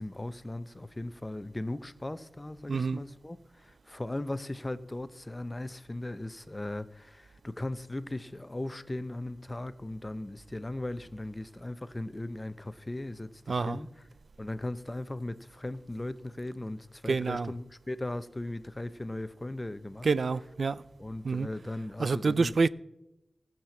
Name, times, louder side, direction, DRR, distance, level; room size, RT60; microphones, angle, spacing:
voice 1, 0.0-14.0 14.4-20.1 21.0-22.5, left 1 dB, 20° left, 0.6 m, -38 dB
voice 2, 2.7-3.0 13.5-13.8 17.1-17.5 20.0-20.8 21.2-21.5 22.0-22.7, right 4 dB, 65° right, 0.4 m, -27 dB
16.0 x 7.5 x 7.1 m
wide cardioid pair, 100°, 0 cm